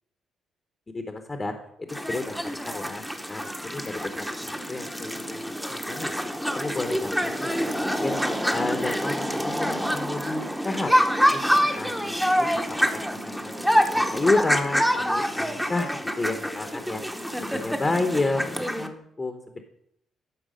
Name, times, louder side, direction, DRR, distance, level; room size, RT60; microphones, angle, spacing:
voice 1, 0.9-1.5 1.9-3.8 4.2-6.1 6.5-7.8 8.0-8.2 8.5-10.9 11.3-13.5 13.9-17.0 17.5-19.6, left 2 dB, 25° left, 6 dB, 0.9 m, -31 dB
sound 1, 1.9-18.9, equal, ahead, 0.8 m, -26 dB
11.5 x 4.5 x 5.1 m, 0.75 s
cardioid pair, 90°, 0 cm